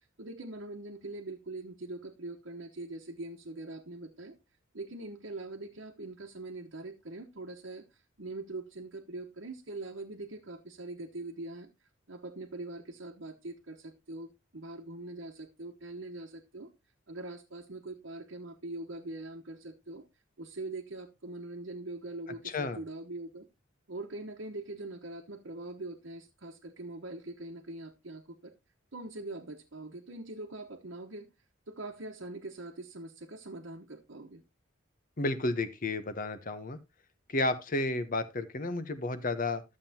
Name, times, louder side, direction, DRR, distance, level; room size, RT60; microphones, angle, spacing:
voice 1, 0.0-4.4 4.7-16.7 17.1-20.0 20.4-23.5 23.9-28.5 28.9-31.3 31.7-34.4, right 2 dB, 65° right, 1.1 m, -43 dB
voice 2, 22.4-22.8 35.2-36.8 37.3-39.6, left 2 dB, 45° left, 0.9 m, -32 dB
12.5 x 7.4 x 2.8 m
head